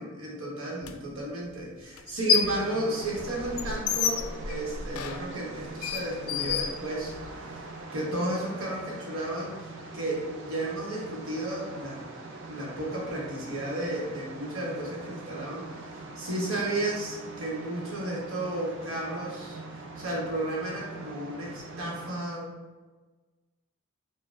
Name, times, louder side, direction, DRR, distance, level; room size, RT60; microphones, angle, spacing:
voice 1, 0.0-7.6 7.9-9.7 9.9-12.0 12.4-15.6 16.2-19.6 20.0-22.5, right 1 dB, 75° right, -3 dB, 1.1 m, -33 dB
sound 1, 0.8-0.9 2.0-2.6 3.0-7.4, left 7 dB, 85° left, 0.3 m, -29 dB
sound 2, 2.5-22.2, right 3 dB, 60° right, 0.5 m, -43 dB
6.0 x 2.2 x 2.4 m, 1.3 s
head